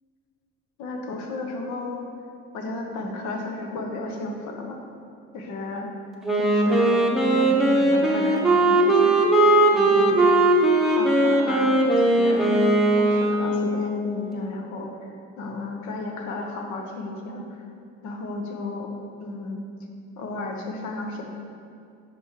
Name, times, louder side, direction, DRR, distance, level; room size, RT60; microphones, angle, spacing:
voice 1, 0.8-2.1 2.5-4.8 5.3-5.9 6.4-9.2 9.7-10.2 10.9-12.7 12.9-15.1 15.4-17.6 18.0-18.9 19.2-19.6 20.2-21.2, left 2 dB, 75° left, 2 dB, 1.0 m, -33 dB
Wind instrument woodwind instrument, 6.2-13.9, right 2 dB, ahead, 0.8 m, -19 dB
5.3 x 5.1 x 4.7 m, 2.5 s
cardioid pair, 105°, 30 cm